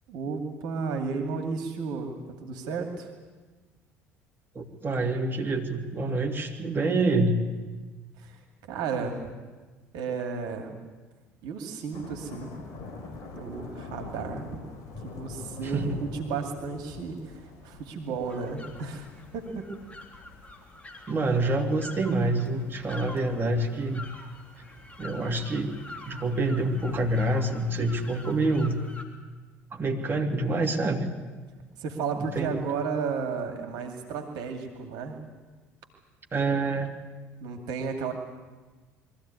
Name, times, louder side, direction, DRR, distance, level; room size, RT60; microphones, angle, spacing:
voice 1, 0.1-3.1 8.2-8.4 8.7-9.3 9.9-10.8 11.4-12.5 13.3-14.6 15.0-19.1 19.3-19.7 21.0-21.1 31.8-35.2 37.4-38.1, right 5 dB, 65° right, 4 dB, 2.4 m, -33 dB
voice 2, 4.5-7.4 15.6-15.9 21.1-24.1 25.0-25.8 26.1-28.8 29.7-31.1 32.3-32.6 36.3-36.9, right 2 dB, 30° right, 1 dB, 3.0 m, -27 dB
sound 1, 11.9-28.7, left 3 dB, 55° left, 4.5 m, -46 dB
sound 2, 18.2-29.0, left 2 dB, 15° left, 3.5 m, -47 dB
23.0 x 14.5 x 9.6 m, 1.3 s
hypercardioid pair, 60°, 8 cm